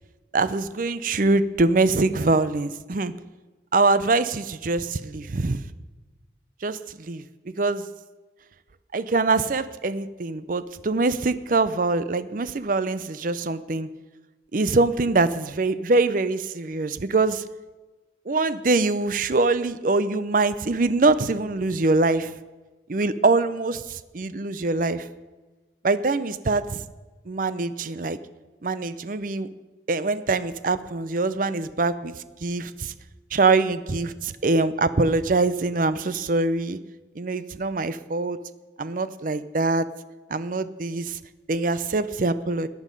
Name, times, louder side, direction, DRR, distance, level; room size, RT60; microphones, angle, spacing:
voice 1, 0.3-3.1 3.7-5.6 6.6-7.2 7.6-7.9 8.9-13.9 14.5-17.4 18.3-22.3 22.9-25.1 25.8-26.8 27.3-28.2 28.6-29.5 29.9-32.1 32.4-32.9 33.3-36.8 37.2-38.4 38.8-39.9 40.3-41.2 41.5-42.7, right 3 dB, 45° right, 14 dB, 0.5 m, -23 dB
14.5 x 9.6 x 5.3 m, 1.2 s
head